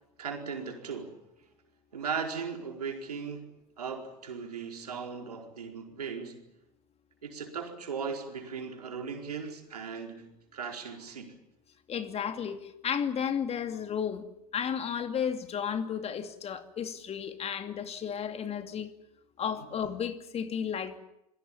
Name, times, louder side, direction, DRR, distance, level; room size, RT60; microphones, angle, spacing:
voice 1, 0.2-1.2 1.9-3.5 3.8-6.4 7.2-11.4 19.6-19.7, right 6 dB, 80° right, 3 dB, 4.5 m, -38 dB
voice 2, 11.9-14.2 14.5-18.9 19.4-21.0, left 7 dB, 30° left, 8 dB, 2.5 m, -33 dB
28.0 x 22.5 x 7.3 m, 0.85 s
hypercardioid pair, 80°, 20 cm